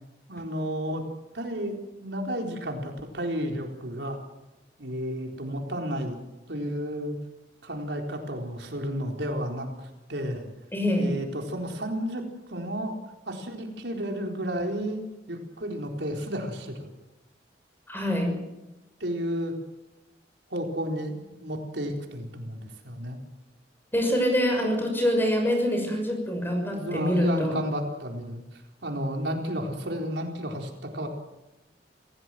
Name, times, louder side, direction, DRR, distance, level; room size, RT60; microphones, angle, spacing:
voice 1, 0.3-1.0 1.3-4.2 4.8-6.2 6.5-7.2 7.6-10.5 11.0-12.9 13.3-15.0 15.3-16.9 19.0-19.5 20.5-21.1 21.4-23.2 26.7-31.1, equal, 75° right, 2 dB, 4.1 m, -32 dB
voice 2, 10.7-11.1 17.9-18.4 23.9-27.5, equal, 10° left, 3 dB, 6.2 m, -25 dB
27.5 x 16.5 x 7.7 m, 1.0 s
head